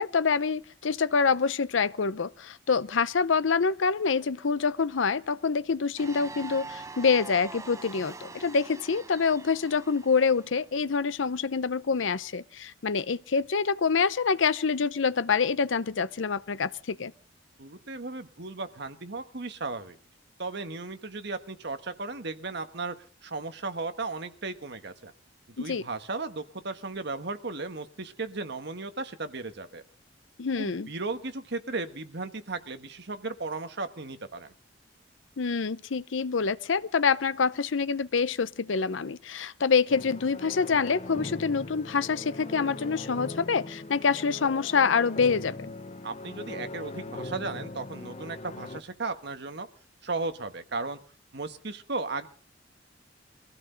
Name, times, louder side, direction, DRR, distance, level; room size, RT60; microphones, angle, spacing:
voice 1, 0.0-17.1 25.6-25.8 30.4-30.9 35.4-45.7, left 5 dB, 90° left, 0.7 m, -26 dB
sound 1, 6.0-10.6, right 3 dB, 15° right, 0.7 m, -43 dB
voice 2, 17.6-20.0 20.4-22.9 23.2-25.1 25.6-29.8 30.5-34.5 46.0-49.7 50.0-51.0 51.3-52.3, right 3 dB, 60° right, 1.5 m, -35 dB
sound 2, 39.9-48.8, left 2 dB, 35° left, 0.9 m, -40 dB
23.0 x 15.5 x 4.0 m
head